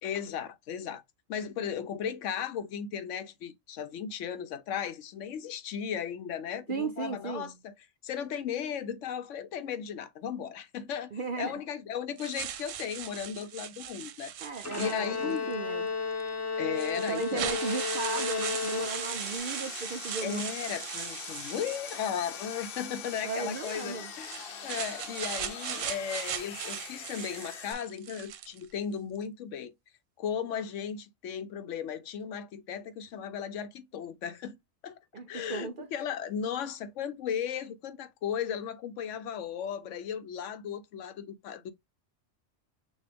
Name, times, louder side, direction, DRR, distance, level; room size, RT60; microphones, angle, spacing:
voice 1, 0.0-1.0 1.3-7.7 8.0-14.3 14.8-15.5 16.6-17.5 20.2-29.7 30.2-34.6 34.8-35.0 35.3-41.7, left 8 dB, 80° left, 1.0 m, -36 dB
voice 2, 6.7-7.5 11.1-11.6 14.4-15.9 17.0-20.4 23.2-24.1 35.1-35.9, right 4 dB, 60° right, 0.6 m, -36 dB
sound 1, 12.2-15.4 16.2-16.3 16.8-22.5 23.5-28.7, right 10 dB, 85° right, 1.0 m, -39 dB
Bowed string instrument, 14.6-19.4, left 5 dB, 15° left, 0.7 m, -33 dB
Sawing, 17.5-27.7, left 7 dB, 55° left, 0.8 m, -42 dB
6.2 x 2.4 x 3.4 m
omnidirectional pair, 1.3 m